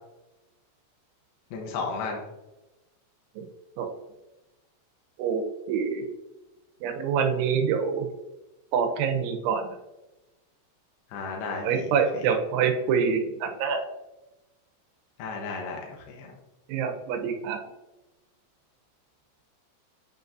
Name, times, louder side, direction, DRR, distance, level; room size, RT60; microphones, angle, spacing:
voice 1, 1.5-2.2 11.1-12.2 15.2-16.3, left 4 dB, 75° left, 0 dB, 2.8 m, -34 dB
voice 2, 5.7-6.0 6.8-8.1 8.7-9.6 11.6-13.8 16.7-17.6, right 6 dB, 85° right, 4 dB, 3.3 m, -26 dB
8.8 x 5.3 x 2.6 m, 1.0 s
omnidirectional pair, 5.3 m